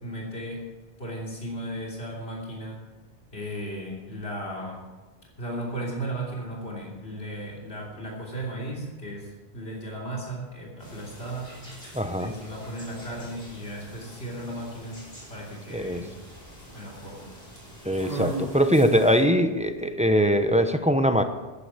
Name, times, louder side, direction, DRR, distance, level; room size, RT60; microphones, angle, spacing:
voice 1, 0.0-0.7 1.0-2.8 3.3-4.9 5.4-11.6 12.1-15.0 15.3-16.1 16.7-17.3, right 1 dB, 70° left, -3 dB, 3.4 m, -35 dB
sound 1, 10.8-19.2, right 2 dB, 35° left, 5.2 m, -41 dB
voice 2, 11.9-12.3 15.7-16.1 17.8-21.2, equal, 5° right, 7 dB, 0.9 m, -22 dB
14.5 x 9.9 x 7.3 m, 1.3 s
omnidirectional pair, 1.1 m